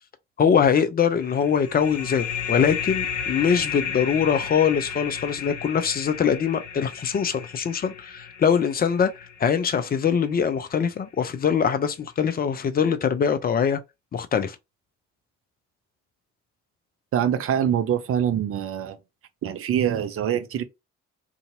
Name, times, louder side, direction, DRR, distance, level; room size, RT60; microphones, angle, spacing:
voice 1, 0.4-9.1 9.4-13.8 14.1-14.6, left 7 dB, 25° left, 0.5 m, -23 dB
sound 1, 1.2-10.5, left 7 dB, 85° left, 0.5 m, -33 dB
voice 2, 17.1-19.0 19.4-20.6, right 9 dB, 40° right, 0.6 m, -24 dB
2.7 x 2.6 x 2.6 m
figure-of-eight pair, 50°, 36 cm